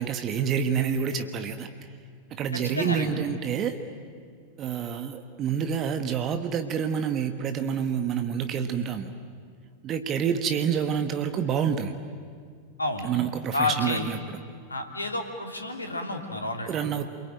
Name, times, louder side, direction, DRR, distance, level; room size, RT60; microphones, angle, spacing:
voice 1, 0.0-1.7 2.3-3.8 4.6-9.1 9.8-12.0 13.0-14.4 16.7-17.0, right 7 dB, 30° right, 8 dB, 1.5 m, -28 dB
voice 2, 2.6-3.1 12.8-13.1 13.5-14.0 14.7-16.7, left 2 dB, 80° left, 4 dB, 3.0 m, -30 dB
28.5 x 22.5 x 9.1 m, 2.1 s
figure-of-eight pair, 90°, 0 cm